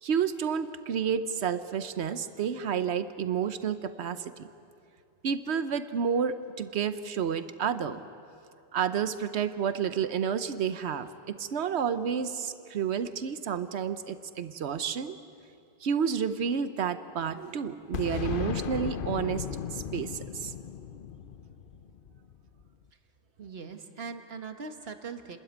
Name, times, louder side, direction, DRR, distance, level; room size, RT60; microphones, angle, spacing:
voice 1, 0.0-4.5 5.2-8.0 8.7-15.2 15.8-19.5 19.7-20.5, right 7 dB, 85° right, 11 dB, 1.1 m, -30 dB
Boom, 17.9-22.6, left 7 dB, 55° left, 0.8 m, -36 dB
voice 2, 23.4-25.4, right 5 dB, 65° right, 6 dB, 1.6 m, -40 dB
30.0 x 13.0 x 9.4 m, 2.5 s
omnidirectional pair, 1.1 m